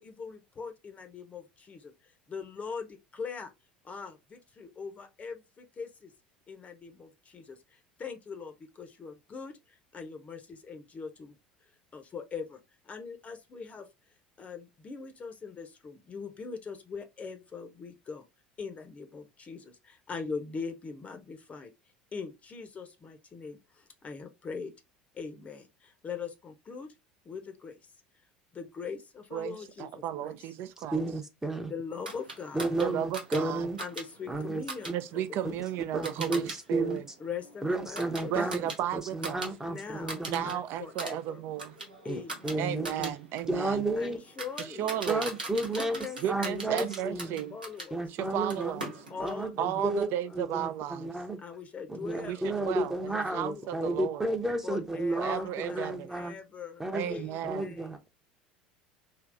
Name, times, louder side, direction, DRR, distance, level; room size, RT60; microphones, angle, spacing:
voice 1, 0.0-3.5 3.8-6.1 6.5-11.4 11.9-13.9 14.4-18.2 18.6-21.7 22.1-24.7 25.1-26.9 27.2-27.8 28.5-30.4 31.7-32.7 33.8-35.6 36.2-36.5 37.2-38.3 39.6-41.7 42.0-43.0 44.0-45.1 45.7-48.0 49.1-49.9 50.3-50.7 51.4-52.8 53.1-53.8 54.6-58.0, left 5 dB, 30° left, 0.7 m, -42 dB
voice 2, 29.3-31.1 32.8-33.7 34.9-37.0 38.3-39.5 40.3-41.8 42.6-43.8 44.6-45.3 46.2-47.6 48.1-48.9 49.6-51.1 52.2-54.3 55.2-56.1 56.9-57.7, right 11 dB, 55° right, 0.4 m, -34 dB
voice 3, 30.8-31.7 32.5-33.8 34.3-34.9 35.4-35.5 35.9-37.0 37.6-40.5 42.1-43.1 43.5-44.2 45.1-46.0 46.3-47.4 47.9-48.8 49.2-50.1 50.3-51.4 51.9-56.4 56.8-58.1, right 2 dB, 10° right, 0.7 m, -32 dB
sound 1, 32.0-36.6 36.9-39.5 39.8-40.5 40.8-47.9 48.5-49.4, right 2 dB, 90° right, 0.9 m, -41 dB
3.3 x 2.8 x 2.5 m
figure-of-eight pair, 70°, 5 cm